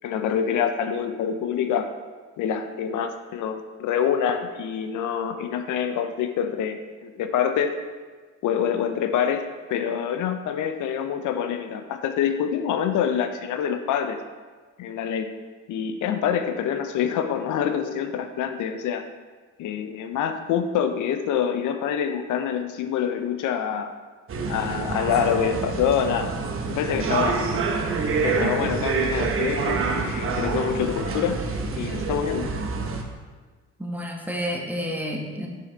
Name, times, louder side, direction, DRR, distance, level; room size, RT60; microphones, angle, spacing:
voice 1, 0.0-1.9 2.4-7.8 8.4-14.2 14.8-15.3 15.7-19.0 19.6-23.9 24.5-26.3 26.7-27.6 28.2-31.4 31.8-32.5, left 8 dB, 80° left, 8 dB, 0.6 m, -26 dB
sound 1, 24.3-33.0, right 4 dB, 45° right, 0.9 m, -27 dB
voice 2, 33.8-35.5, equal, 5° right, 0 dB, 1.2 m, -30 dB
6.5 x 5.6 x 3.9 m, 1.5 s
cardioid pair, 90°, 30 cm